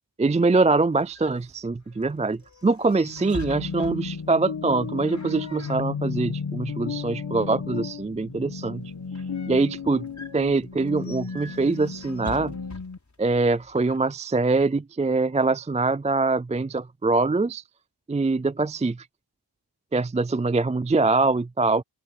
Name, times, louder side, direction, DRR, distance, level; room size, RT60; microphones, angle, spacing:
voice 1, 0.2-8.9 9.5-10.0 10.3-12.6 13.2-17.6 18.1-19.1 19.9-21.8, right 3 dB, 15° right, 0.4 m, -23 dB
sound 1, 0.6-14.0, left 2 dB, 40° left, 6.8 m, -46 dB
sound 2, 3.0-13.0, left 5 dB, 65° left, 1.5 m, -34 dB
open air
wide cardioid pair, 85°, 42 cm